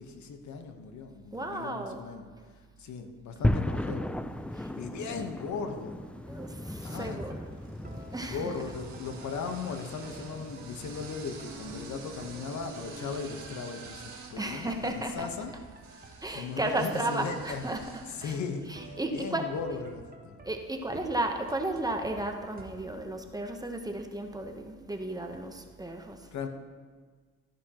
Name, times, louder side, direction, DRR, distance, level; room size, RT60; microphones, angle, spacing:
voice 1, 0.0-2.2 2.8-4.2 4.6-6.0 6.8-7.2 8.2-15.5 16.3-17.6 18.2-20.4 26.3-26.5, left 5 dB, 70° left, 6 dB, 1.1 m, -37 dB
voice 2, 1.3-2.1 4.5-4.7 5.0-5.1 6.3-7.5 7.9-8.7 14.4-15.3 16.2-18.4 18.6-19.5 20.4-26.3, right 2 dB, 10° right, 4 dB, 0.9 m, -34 dB
sound 1, 3.4-13.7, left 1 dB, 5° left, 0.3 m, -36 dB
sound 2, 5.4-6.1 6.8-19.1, right 4 dB, 70° right, 2.0 m, -49 dB
sound 3, 7.2-22.7, right 2 dB, 30° right, 1.4 m, -52 dB
14.0 x 10.0 x 3.0 m, 1.5 s
cardioid pair, 90°, 30 cm